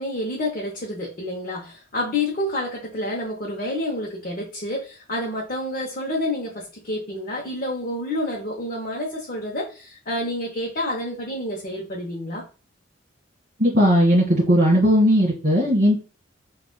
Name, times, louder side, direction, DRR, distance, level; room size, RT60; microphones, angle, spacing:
voice 1, 0.0-12.5, left 1 dB, 45° left, 0.7 m, -29 dB
voice 2, 13.6-16.0, equal, 55° right, 1.6 m, -17 dB
6.1 x 2.4 x 2.2 m
head